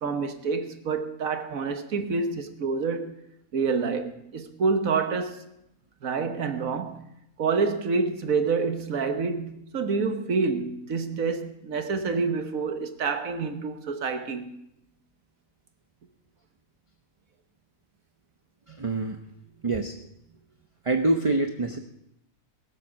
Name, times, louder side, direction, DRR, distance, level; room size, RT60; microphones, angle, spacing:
voice 1, 0.0-3.2 3.5-5.4 6.0-7.1 7.4-14.6, right 4 dB, 80° right, 1.6 m, -27 dB
voice 2, 18.7-19.2 19.6-20.0 20.8-21.8, right 2 dB, 30° right, 0.8 m, -25 dB
21.5 x 7.7 x 6.1 m
omnidirectional pair, 1.4 m